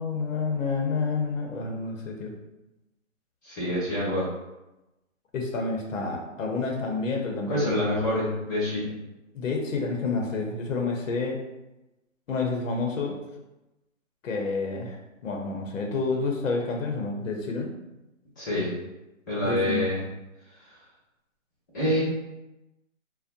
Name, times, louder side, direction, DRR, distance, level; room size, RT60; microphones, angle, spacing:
voice 1, 0.0-2.3 5.3-7.7 9.3-11.4 12.3-13.2 14.2-17.7 19.4-19.9, left 4 dB, 70° left, 1 dB, 0.7 m, -29 dB
voice 2, 3.4-4.3 7.5-9.0 18.4-18.7 19.3-20.0 21.7-22.0, left 1 dB, 15° left, -12 dB, 0.7 m, -26 dB
2.6 x 2.1 x 2.5 m, 0.98 s
hypercardioid pair, 160°, 40 cm